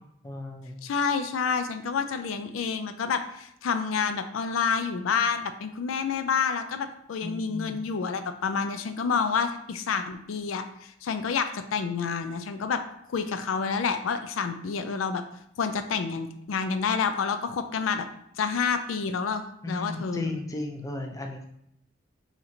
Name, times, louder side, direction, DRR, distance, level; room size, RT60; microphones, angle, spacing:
voice 1, 0.2-0.9 7.2-7.8 19.6-21.4, left 2 dB, 15° left, 3 dB, 0.4 m, -35 dB
voice 2, 0.8-12.8 13.1-15.2 15.6-18.1 18.4-20.3, left 5 dB, 90° left, 8 dB, 0.4 m, -28 dB
3.7 x 2.9 x 4.2 m, 0.74 s
head